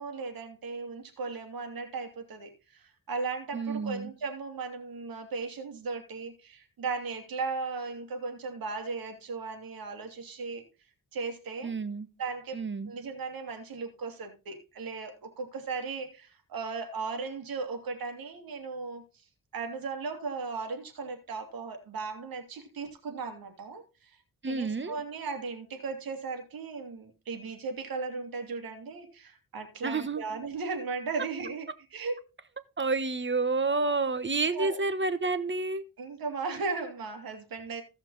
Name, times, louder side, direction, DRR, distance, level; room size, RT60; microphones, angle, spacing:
voice 1, 0.0-10.6 11.1-11.7 12.2-19.0 19.5-24.1 24.4-32.2 34.5-34.8 36.0-37.8, right 4 dB, 80° right, 2.9 m, -36 dB
voice 2, 3.5-4.1 11.6-12.1 12.5-12.9 24.4-25.0 29.8-30.2 32.8-35.8, right 3 dB, 35° right, 1.2 m, -29 dB
16.0 x 5.8 x 4.1 m
cardioid pair, 65°, 35 cm